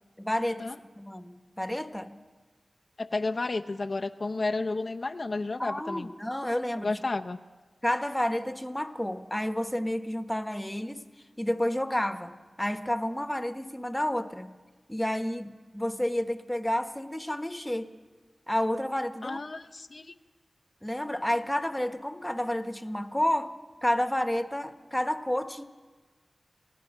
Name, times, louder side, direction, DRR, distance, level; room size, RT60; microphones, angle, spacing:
voice 1, 0.2-2.2 5.6-7.0 7.8-11.1 11.4-14.6 14.9-17.9 18.5-19.4 20.8-23.5 23.8-25.6, left 1 dB, 10° left, 8 dB, 1.3 m, -30 dB
voice 2, 3.0-6.1 6.8-7.4 19.2-20.1, left 3 dB, 60° left, 5 dB, 0.7 m, -32 dB
28.0 x 17.5 x 5.4 m, 1.4 s
wide cardioid pair, 55°, 0 cm